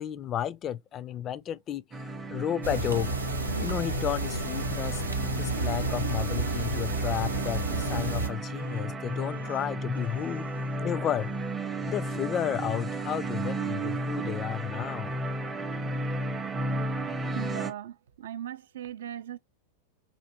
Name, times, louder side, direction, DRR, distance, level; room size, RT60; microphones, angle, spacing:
voice 1, 0.0-3.1 3.6-5.0 5.4-10.5 10.8-11.3 11.9-15.1, left 10 dB, 30° left, 0.3 m, -32 dB
sound 1, 1.9-17.7, right 1 dB, 20° right, 0.6 m, -34 dB
sound 2, 2.6-8.3, right 2 dB, 80° right, 0.7 m, -31 dB
sound 3, 3.2-4.4 4.7-5.0 6.9-7.0 7.7-10.7 11.1-11.6, left 1 dB, 90° left, 0.8 m, -48 dB
voice 2, 17.3-19.4, right 11 dB, 60° right, 0.3 m, -38 dB
4.3 x 2.6 x 2.8 m
figure-of-eight pair, 90°, 0 cm